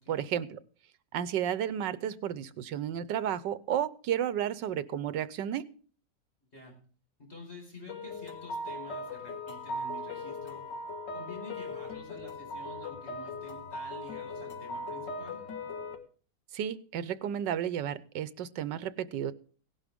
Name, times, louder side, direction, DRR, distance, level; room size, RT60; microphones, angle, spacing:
voice 1, 0.1-0.6 1.1-5.6 16.5-19.3, right 9 dB, 80° right, 16 dB, 1.5 m, -32 dB
voice 2, 7.2-10.7 11.1-15.4, left 1 dB, 35° left, 1 dB, 4.9 m, -49 dB
sound 1, 7.9-16.0, left 2 dB, 75° left, 2.2 m, -39 dB
17.0 x 11.0 x 3.6 m, 0.41 s
omnidirectional pair, 1.9 m